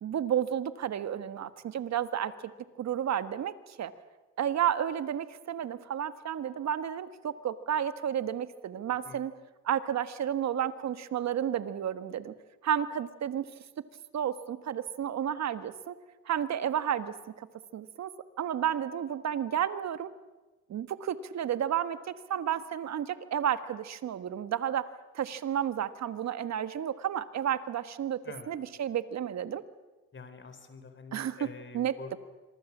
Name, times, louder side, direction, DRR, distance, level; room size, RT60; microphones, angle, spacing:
voice 1, 0.0-2.5 2.8-3.9 4.4-9.3 9.6-12.3 12.6-13.5 14.1-15.9 16.2-17.5 17.7-18.1 18.4-20.1 20.7-24.8 25.1-28.2 28.5-29.6 31.1-31.4 31.7-32.2, right 9 dB, 60° right, 12 dB, 1.5 m, -31 dB
voice 2, 30.1-32.2, left 4 dB, 40° left, 9 dB, 4.3 m, -46 dB
26.0 x 23.5 x 7.4 m, 1.1 s
cardioid pair, 90°, 30 cm